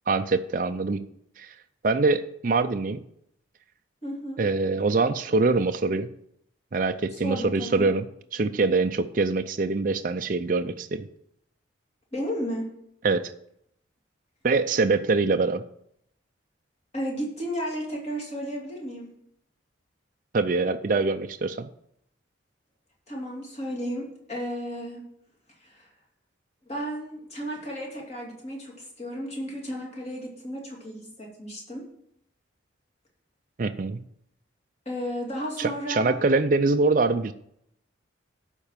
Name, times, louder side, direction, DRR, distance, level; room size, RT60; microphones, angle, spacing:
voice 1, 0.1-1.0 1.4-1.5 1.8-3.0 4.4-6.1 6.7-8.0 8.3-11.1 13.0-13.3 14.4-15.6 20.3-21.7 33.6-34.0 35.6-37.3, right 3 dB, 45° right, 8 dB, 0.4 m, -24 dB
voice 2, 4.0-4.4 7.1-7.9 12.1-12.7 16.9-19.1 23.1-25.0 25.6-25.9 26.7-31.8 34.9-36.2, equal, 35° left, -2 dB, 2.6 m, -33 dB
11.5 x 4.5 x 7.3 m, 0.73 s
head